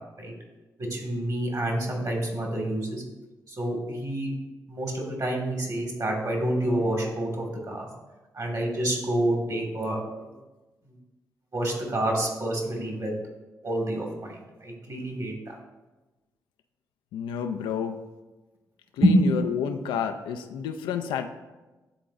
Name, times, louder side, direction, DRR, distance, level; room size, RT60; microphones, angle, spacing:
voice 1, 0.9-3.0 3.6-4.3 4.7-7.9 8.4-10.0 11.5-13.1 13.6-14.4 14.6-15.3 19.0-19.2, right 1 dB, 50° right, 0 dB, 2.1 m, -28 dB
voice 2, 17.1-18.0 18.9-21.3, left 7 dB, 85° left, 7 dB, 0.4 m, -30 dB
10.0 x 3.7 x 2.6 m, 1.1 s
supercardioid pair, 40°, 8 cm